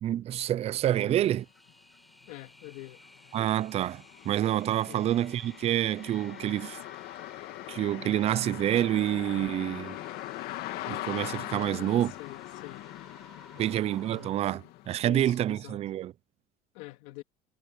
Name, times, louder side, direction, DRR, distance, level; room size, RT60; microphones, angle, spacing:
voice 1, 0.0-1.4 3.3-6.8 7.7-10.0 10.9-12.1 13.6-16.1, right 12 dB, 40° right, 0.5 m, -28 dB
sound 1, 0.9-14.3, equal, ahead, 7.4 m, -55 dB
sound 2, 1.7-1.8 2.2-15.1, left 17 dB, 70° left, 2.5 m, -42 dB
voice 2, 2.3-3.0 4.9-5.1 11.6-12.8 13.6-14.4 15.0-15.8 16.7-17.2, left 20 dB, 90° left, 2.6 m, -46 dB
cardioid pair, 130°, 17 cm